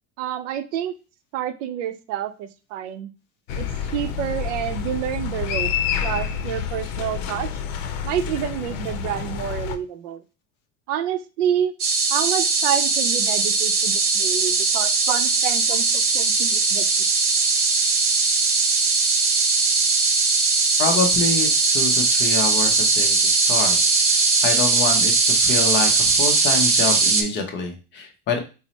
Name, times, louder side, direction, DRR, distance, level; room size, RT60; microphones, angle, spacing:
voice 1, 0.2-0.9 1.3-3.1 3.6-3.7 3.9-5.7 6.0-7.5 8.0-10.2 10.9-11.7 12.1-16.9, right 10 dB, 80° right, 10 dB, 0.6 m, -28 dB
sound 1, 3.5-9.8, left 8 dB, 80° left, 0.7 m, -28 dB
sound 2, 11.8-27.2, right 4 dB, 30° right, 0.6 m, -19 dB
voice 2, 20.8-23.8 24.1-28.4, left 4 dB, 30° left, 3 dB, 0.7 m, -26 dB
4.4 x 2.1 x 4.0 m, 0.32 s
supercardioid pair, 155°, 37 cm